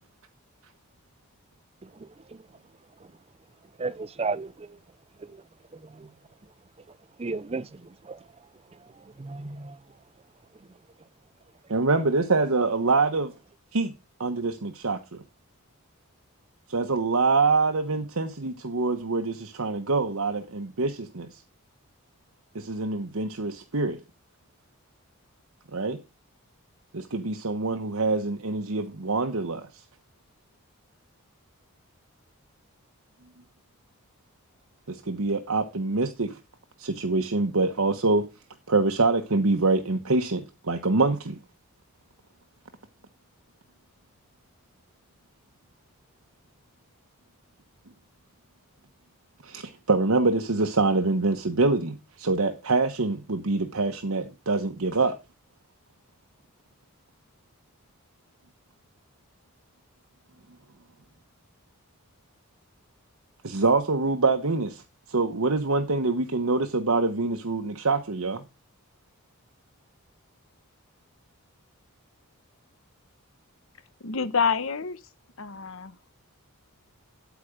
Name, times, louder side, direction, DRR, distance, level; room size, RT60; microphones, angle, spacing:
voice 1, 1.8-2.4 3.8-4.8 5.2-5.4 5.8-6.1 7.2-8.2 9.0-9.8, right 3 dB, 25° right, 0.4 m, -35 dB
voice 2, 11.7-13.3 13.7-13.9 14.2-15.2 16.7-21.4 22.5-24.0 25.7-26.0 26.9-29.7 34.9-36.4 36.8-38.3 38.7-41.4 49.4-55.2 63.4-64.8 65.1-68.4, right 3 dB, 70° right, 1.1 m, -25 dB
voice 3, 74.0-75.0 75.4-76.0, left 5 dB, 60° left, 1.0 m, -27 dB
9.3 x 8.6 x 5.1 m
head